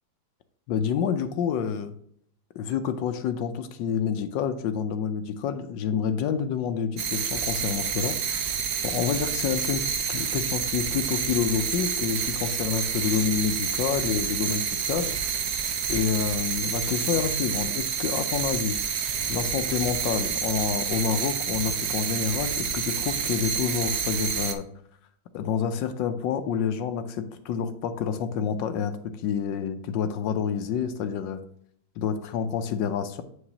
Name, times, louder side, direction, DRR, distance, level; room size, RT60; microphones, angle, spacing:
voice 1, 0.7-1.9 2.6-8.2 8.8-9.8 10.1-15.1 15.9-18.8 19.3-24.6 25.3-29.0 29.2-31.4 32.0-33.2, left 7 dB, 75° left, 9 dB, 1.2 m, -28 dB
sound 1, 7.0-24.5, right 7 dB, 65° right, 1.0 m, -29 dB
8.0 x 4.9 x 2.8 m, 0.66 s
omnidirectional pair, 2.1 m